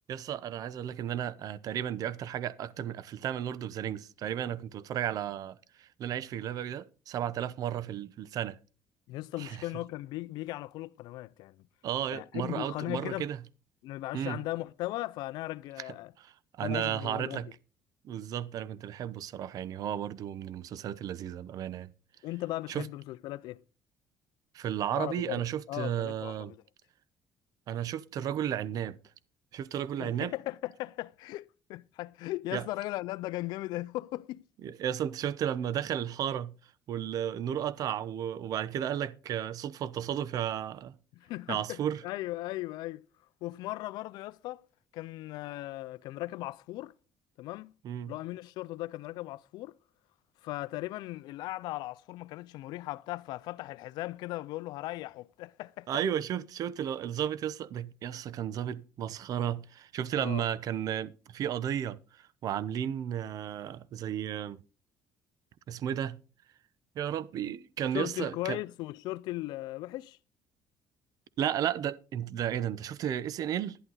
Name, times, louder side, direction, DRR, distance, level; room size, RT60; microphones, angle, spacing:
voice 1, 0.1-8.6 9.4-9.6 11.8-13.4 14.1-14.4 16.2-17.5 18.0-21.9 22.7-22.9 24.5-26.5 27.7-29.0 29.5-30.3 32.5-32.7 34.6-36.5 36.9-40.9 41.5-42.0 47.8-48.1 55.9-64.6 65.7-66.2 67.0-68.6 71.4-73.8, right 10 dB, 60° right, 0.8 m, -33 dB
voice 2, 9.1-11.6 12.1-13.3 13.8-16.1 16.6-17.4 22.2-23.6 24.9-26.6 30.0-34.4 41.2-43.0 43.4-44.6 44.9-46.9 47.4-47.7 48.1-49.7 50.4-55.9 60.2-60.5 67.9-70.2, left 17 dB, 80° left, 0.5 m, -37 dB
11.5 x 11.0 x 3.9 m
cardioid pair, 115°, 7 cm